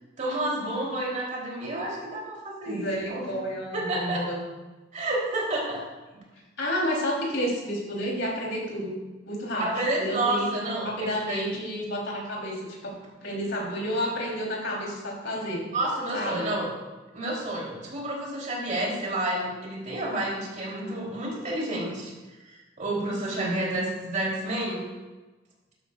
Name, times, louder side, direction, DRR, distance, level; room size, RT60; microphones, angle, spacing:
voice 1, 0.2-3.3 3.7-4.3 4.9-5.8 9.6-11.5 15.7-16.7 17.1-22.1 22.8-24.8, right 1 dB, 40° right, -3 dB, 3.3 m, -30 dB
voice 2, 2.6-4.4 6.6-8.9 9.2-12.6 12.8-12.9 13.2-15.6 16.1-16.5 23.3-23.6, equal, 65° left, -3 dB, 3.5 m, -30 dB
13.5 x 11.5 x 2.4 m, 1.2 s
head